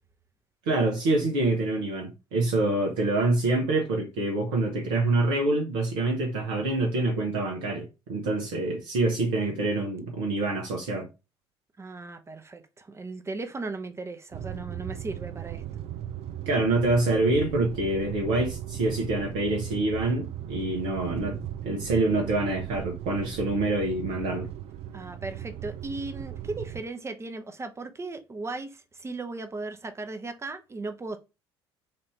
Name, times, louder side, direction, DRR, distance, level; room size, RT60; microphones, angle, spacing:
voice 1, 0.7-11.1 16.5-21.4 21.6-24.5, right 2 dB, 65° right, 1.1 m, -26 dB
voice 2, 11.8-15.6 24.9-31.2, right 3 dB, 20° right, 0.8 m, -37 dB
sound 1, 14.3-26.8, right 11 dB, 50° right, 0.5 m, -37 dB
4.3 x 2.7 x 3.3 m
figure-of-eight pair, 60°, 14 cm